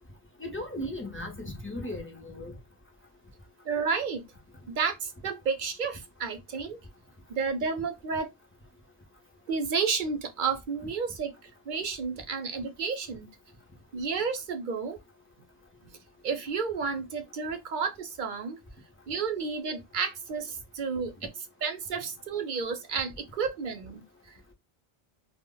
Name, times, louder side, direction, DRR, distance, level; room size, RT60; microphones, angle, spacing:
voice 1, 0.4-2.5, left 1 dB, 15° left, 0.5 m, -36 dB
voice 2, 3.6-4.2 4.7-6.8 7.3-8.3 9.5-13.3 13.9-15.0 16.2-18.6 19.1-21.3 21.6-24.0, right 5 dB, 60° right, 0.6 m, -31 dB
2.0 x 2.0 x 3.7 m
omnidirectional pair, 1.0 m